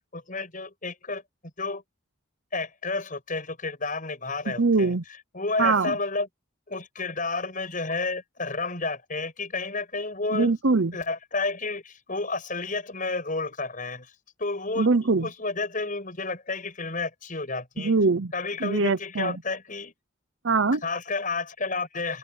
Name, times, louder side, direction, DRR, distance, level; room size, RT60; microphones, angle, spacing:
voice 1, 0.1-1.2 1.6-1.8 2.5-4.9 5.3-6.3 6.7-10.5 10.9-14.1 14.4-17.9 18.3-19.9 20.8-22.2, left 3 dB, 40° left, 6.2 m, -31 dB
voice 2, 4.6-5.0 5.6-5.9 10.3-11.0 14.8-15.3 17.8-18.3 18.6-19.4 20.4-20.8, right 4 dB, 65° right, 0.8 m, -22 dB
open air
head